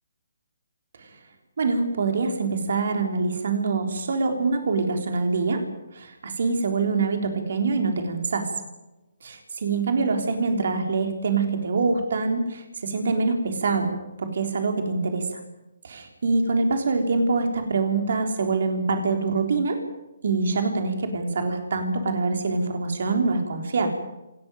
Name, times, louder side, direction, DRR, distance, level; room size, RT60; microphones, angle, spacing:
voice 1, 1.6-5.7 5.9-8.5 9.2-13.9 14.2-15.4 15.8-19.8 20.2-23.9, right 4 dB, 55° right, 4 dB, 3.7 m, -25 dB
27.0 x 13.0 x 9.3 m, 0.97 s
figure-of-eight pair, 135°, 0 cm